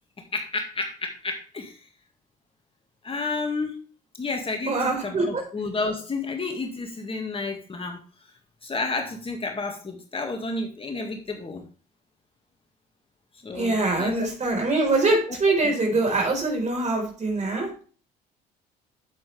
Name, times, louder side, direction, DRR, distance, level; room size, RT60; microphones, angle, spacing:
voice 1, 0.3-1.8 3.0-3.8 4.2-8.0 8.6-11.6 13.4-14.3 15.3-15.4 15.6-16.0, left 3 dB, 30° left, 3 dB, 2.0 m, -31 dB
voice 2, 4.7-5.4 13.5-17.7, right 2 dB, 35° right, 2 dB, 4.5 m, -23 dB
9.0 x 8.5 x 3.4 m, 0.39 s
hypercardioid pair, 55°, 20 cm